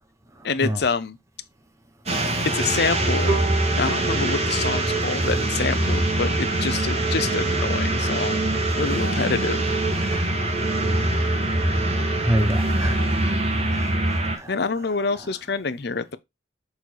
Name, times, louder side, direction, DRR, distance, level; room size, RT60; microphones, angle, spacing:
voice 1, 0.4-1.2 2.5-3.4 3.7-8.4 8.8-9.7 14.5-16.2, left 4 dB, 60° left, 0.7 m, -26 dB
sound 1, 2.1-14.4, right 1 dB, 35° right, 1.6 m, -23 dB
Bowed string instrument, 3.3-6.3, right 5 dB, 90° right, 3.5 m, -33 dB
voice 2, 9.9-10.3 11.9-13.0 13.7-14.5, right 1 dB, 15° right, 1.0 m, -27 dB
6.5 x 4.1 x 4.5 m
head